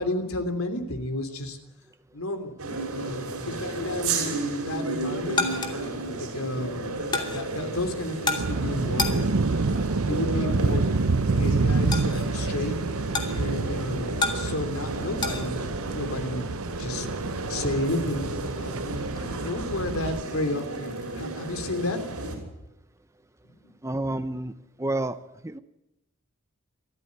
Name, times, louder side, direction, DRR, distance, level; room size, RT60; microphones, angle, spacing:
voice 1, 0.0-1.6 2.1-2.6 2.9-5.5 6.1-9.3 9.6-9.7 10.0-10.9 11.3-12.8 13.3-15.6 15.9-16.4 16.8-17.1 17.5-19.0 19.4-22.4 23.5-23.7, left 1 dB, 75° left, 8 dB, 3.2 m, -32 dB
sound 1, 2.6-22.4, right 2 dB, 85° right, 6.3 m, -33 dB
sound 2, 4.8-15.5, left 3 dB, 20° left, 2.6 m, -34 dB
sound 3, 8.4-20.2, right 3 dB, 65° right, 0.7 m, -28 dB
voice 2, 23.8-24.5 24.8-25.2 25.4-25.6, right 2 dB, 15° right, 11 dB, 0.8 m, -29 dB
24.5 x 14.0 x 9.5 m, 0.88 s
head